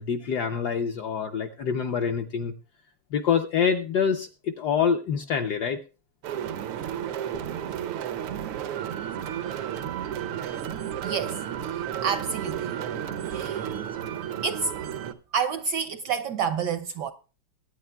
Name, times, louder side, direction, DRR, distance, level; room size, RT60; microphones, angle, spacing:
voice 1, 0.0-2.5 3.1-5.8 7.6-7.7, left 7 dB, 70° left, 1.0 m, -26 dB
sound 1, 6.2-15.1, right 10 dB, 90° right, 1.7 m, -32 dB
voice 2, 11.0-11.4 11.7-12.8 13.2-13.9 14.4-14.7 15.3-17.1, right 6 dB, 70° right, 1.0 m, -29 dB
21.0 x 9.4 x 2.2 m
omnidirectional pair, 2.4 m